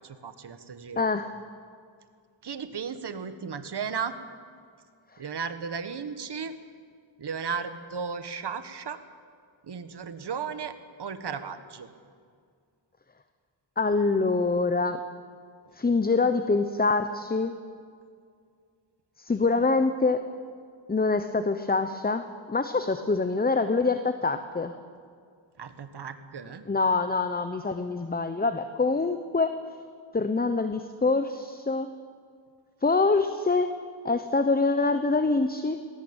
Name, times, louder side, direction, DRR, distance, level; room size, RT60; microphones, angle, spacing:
voice 1, 0.0-1.1 2.4-4.2 5.2-6.5 7.2-9.0 9.6-10.7 11.0-11.9 25.6-26.7, right 6 dB, 60° right, 10 dB, 1.6 m, -35 dB
voice 2, 1.0-1.3 13.8-15.0 15.7-17.6 19.2-20.3 20.9-24.7 26.7-29.6 30.1-31.9 32.8-33.8 34.0-35.8, left 3 dB, 20° left, 9 dB, 0.8 m, -25 dB
20.0 x 17.5 x 8.9 m, 2.2 s
wide cardioid pair, 105°, 46 cm